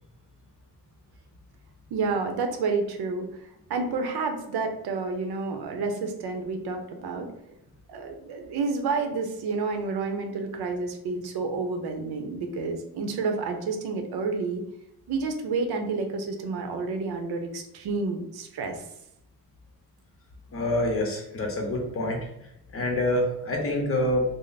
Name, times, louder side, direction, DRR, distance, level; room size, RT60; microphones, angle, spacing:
voice 1, 1.9-7.4 7.9-14.6 15.1-18.8, right 4 dB, 75° right, 5 dB, 0.7 m, -30 dB
voice 2, 20.5-22.3 22.7-24.2, left 1 dB, 35° left, 0 dB, 0.8 m, -26 dB
3.3 x 2.0 x 3.9 m, 0.82 s
wide cardioid pair, 175°, 38 cm